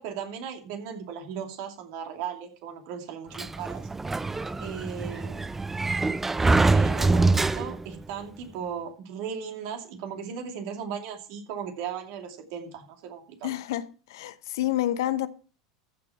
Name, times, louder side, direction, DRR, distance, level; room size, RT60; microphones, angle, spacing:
voice 1, 0.0-3.9 4.6-5.5 6.7-13.5, right 7 dB, 60° right, 2.6 m, -37 dB
Sliding door, 3.3-8.0, right 3 dB, 10° right, 0.5 m, -24 dB
voice 2, 13.4-13.8 14.1-15.3, left 13 dB, 65° left, 0.9 m, -28 dB
14.5 x 6.0 x 5.8 m
figure-of-eight pair, 80°, 2 cm